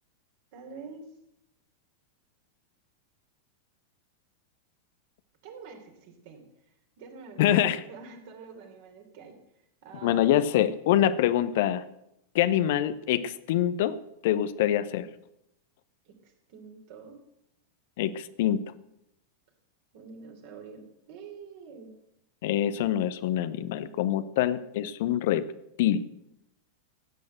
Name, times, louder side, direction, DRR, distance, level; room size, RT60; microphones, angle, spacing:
voice 1, 0.5-1.1 5.4-6.4 7.0-9.3 9.8-10.7 16.0-17.2 19.9-21.9, right 5 dB, 50° right, 3 dB, 3.4 m, -46 dB
voice 2, 7.4-7.8 10.0-11.8 12.3-14.0 14.2-15.1 18.0-18.6 22.4-25.4 25.8-26.0, left 11 dB, 50° left, 13 dB, 0.8 m, -25 dB
15.5 x 8.7 x 7.7 m, 0.82 s
figure-of-eight pair, 90°, 0 cm